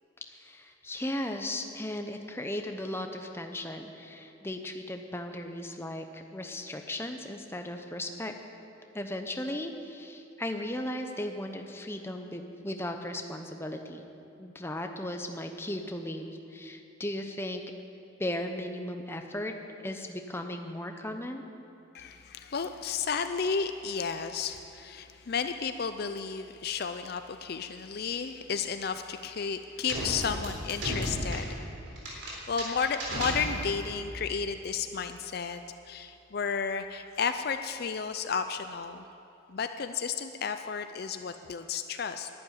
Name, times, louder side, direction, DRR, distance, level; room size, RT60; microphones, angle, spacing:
voice 1, 0.3-8.3 8.9-14.0 14.4-17.6 18.2-19.5 19.8-21.4, left 1 dB, 10° left, 5 dB, 0.8 m, -36 dB
voice 2, 21.9-31.6 32.5-39.0 39.5-42.3, left 6 dB, 50° left, 8 dB, 0.5 m, -33 dB
sound 1, 29.9-34.0, equal, 65° right, 3.6 m, -35 dB
11.5 x 10.5 x 9.2 m, 2.9 s
head